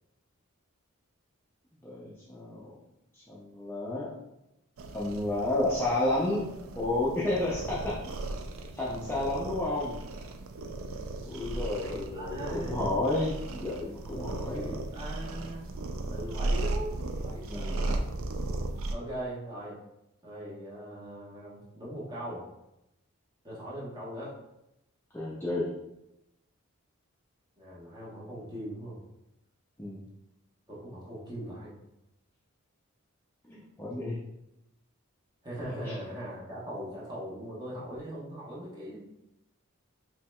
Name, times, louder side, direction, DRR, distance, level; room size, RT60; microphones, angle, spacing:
voice 1, 1.8-2.8 3.3-4.2 4.9-8.1 8.7-10.0 11.2-14.8 17.5-17.8 25.1-25.7 29.8-30.0 33.4-34.2 35.8-35.9, left 2 dB, 10° left, -8 dB, 0.5 m, -31 dB
sound 1, 4.8-19.0, right 2 dB, 70° right, 0.4 m, -36 dB
voice 2, 11.8-12.9 14.5-15.8 16.1-16.9 17.2-18.0 18.9-19.8 20.2-22.4 23.4-24.3 27.6-29.0 30.7-31.7 35.4-39.0, right 1 dB, 20° right, -7 dB, 1.0 m, -40 dB
4.5 x 3.1 x 2.2 m, 0.88 s
head